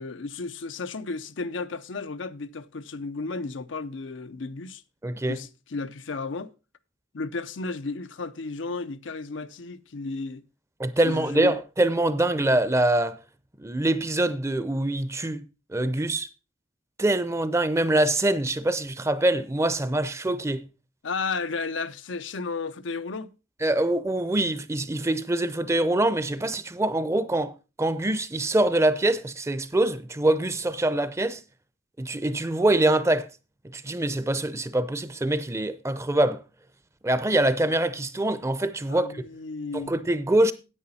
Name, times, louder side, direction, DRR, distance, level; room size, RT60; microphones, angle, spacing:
voice 1, 0.0-4.8 5.3-6.5 7.1-10.4 11.0-11.6 21.0-23.3 38.9-39.9, left 3 dB, 85° left, 0.7 m, -33 dB
voice 2, 5.0-5.4 10.8-13.2 13.6-15.4 15.7-16.3 17.0-20.7 23.6-31.4 32.0-33.3 33.7-36.4 37.0-39.2 39.7-40.5, right 1 dB, 15° right, 0.6 m, -24 dB
9.9 x 8.7 x 4.2 m
head